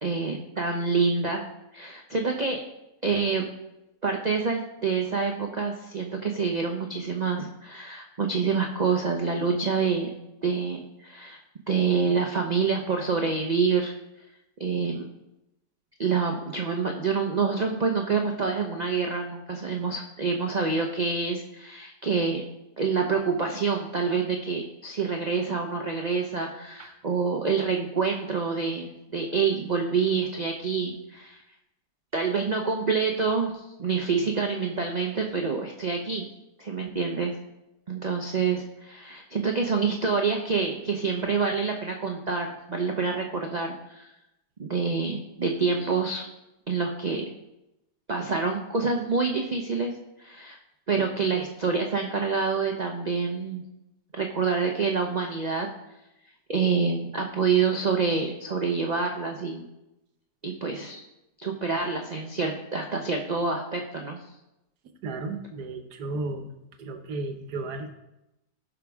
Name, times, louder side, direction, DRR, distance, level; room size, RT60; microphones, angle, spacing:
voice 1, 0.0-1.4 1.7-2.6 3.0-3.5 4.0-10.1 10.4-11.4 11.7-13.9 14.6-15.1 16.0-22.4 22.8-31.4 32.1-36.3 36.6-37.3 37.9-44.1 44.6-46.3 46.7-47.3 48.1-49.9 50.2-50.6 50.9-53.6 54.1-55.7 56.5-59.7 60.4-61.0 61.4-64.2, right 5 dB, 40° right, 2 dB, 0.6 m, -27 dB
voice 2, 65.0-66.5 66.8-68.0, right 2 dB, 75° right, 7 dB, 1.5 m, -34 dB
16.0 x 6.0 x 3.5 m, 0.92 s
omnidirectional pair, 1.8 m